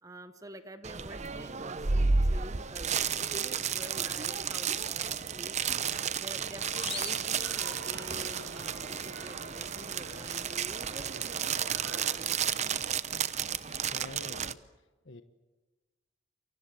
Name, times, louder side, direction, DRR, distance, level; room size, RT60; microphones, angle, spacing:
voice 1, 0.0-5.6 6.2-11.1 11.4-12.4, right 1 dB, 15° right, 9 dB, 1.2 m, -48 dB
sound 1, 0.8-14.5, right 6 dB, 35° right, 0.8 m, -32 dB
sound 2, 6.6-12.2, right 2 dB, 65° right, 4.9 m, -47 dB
sound 3, 6.7-8.2, left 5 dB, 30° left, 6.0 m, -43 dB
voice 2, 13.5-14.6 15.0-15.2, left 2 dB, 60° left, 9 dB, 1.2 m, -47 dB
29.0 x 24.5 x 7.8 m, 1.2 s
head